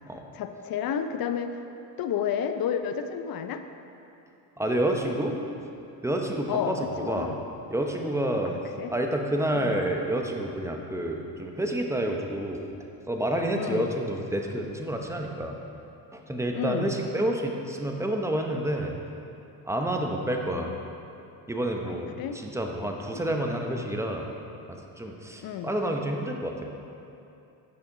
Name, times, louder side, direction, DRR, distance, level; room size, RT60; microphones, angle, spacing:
voice 1, 0.3-1.6 2.0-3.6 6.5-6.7 7.0-7.4 8.4-8.9 9.5-9.7 13.5-13.9 16.5-16.9 20.0-20.9 21.9-22.4 25.4-25.7, left 8 dB, 50° left, 8 dB, 0.6 m, -32 dB
voice 2, 4.6-5.4 6.0-7.4 7.7-8.5 8.9-12.6 13.1-15.6 16.1-19.0 19.6-20.7 21.5-24.3 24.7-26.7, right 1 dB, 5° right, 2 dB, 0.8 m, -29 dB
8.8 x 6.0 x 3.9 m, 2.8 s
supercardioid pair, 75°, 47 cm